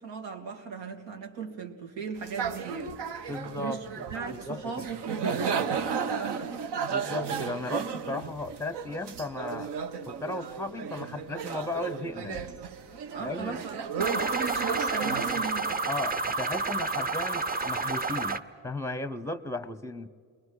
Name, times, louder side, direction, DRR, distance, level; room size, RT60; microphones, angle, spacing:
voice 1, 0.0-3.8 4.1-6.5 13.1-15.9, right 5 dB, 85° right, 4 dB, 2.8 m, -37 dB
sound 1, 2.2-15.5, right 6 dB, 65° right, 1.2 m, -34 dB
voice 2, 3.3-4.8 6.9-9.7 10.1-12.5 13.2-13.7 15.9-20.1, left 2 dB, 5° left, 13 dB, 0.8 m, -36 dB
sound 2, 14.0-18.4, right 3 dB, 20° right, 0.8 m, -30 dB
29.0 x 22.0 x 4.9 m, 2.1 s
cardioid pair, 120°, 43 cm